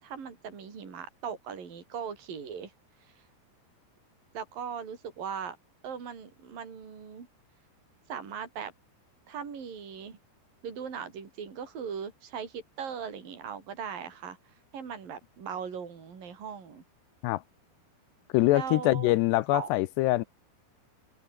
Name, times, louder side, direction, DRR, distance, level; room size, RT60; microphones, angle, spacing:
voice 1, 0.0-2.7 3.1-3.2 4.3-5.6 5.8-7.3 8.1-8.7 9.3-10.2 10.6-14.4 14.7-16.8 18.5-19.1 19.5-19.7, right 7 dB, 55° right, 6.3 m, -39 dB
voice 2, 18.3-20.2, left 18 dB, 80° left, 2.8 m, -24 dB
omnidirectional pair, 5.0 m